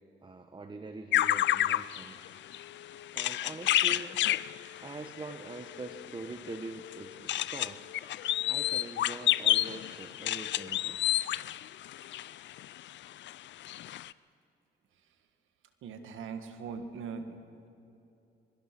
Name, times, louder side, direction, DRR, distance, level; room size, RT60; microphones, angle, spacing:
voice 1, 0.2-2.4 3.1-4.2 4.8-7.9 8.5-11.0, right 3 dB, 25° right, 7 dB, 1.2 m, -44 dB
sound 1, 1.1-12.8 13.3-13.4 13.6-14.1, left 13 dB, 65° left, 0.5 m, -30 dB
voice 2, 15.8-17.4, right 5 dB, 80° right, 7 dB, 1.9 m, -40 dB
26.0 x 21.0 x 6.2 m, 2.8 s
cardioid pair, 90°, 20 cm